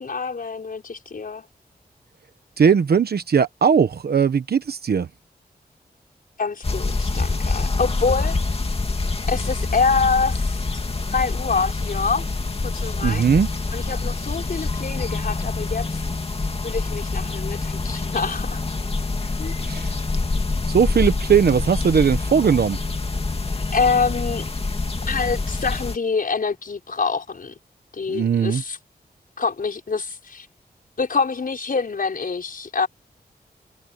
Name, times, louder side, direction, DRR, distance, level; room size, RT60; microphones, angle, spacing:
voice 1, 0.0-1.5 6.4-8.4 9.3-10.8 11.1-12.2 12.6-13.2 13.7-16.0 16.6-18.6 19.4-19.5 23.7-24.4 25.1-27.5 27.9-28.8 29.4-30.5 31.0-32.9, left 4 dB, 60° left, 5.7 m, -25 dB
voice 2, 2.6-5.1 13.0-13.5 19.6-19.9 20.7-22.8 28.1-28.6, right 7 dB, 75° right, 1.1 m, -19 dB
sound 1, 6.6-26.0, left 3 dB, 35° left, 2.4 m, -26 dB
wide cardioid pair, 100°, 16 cm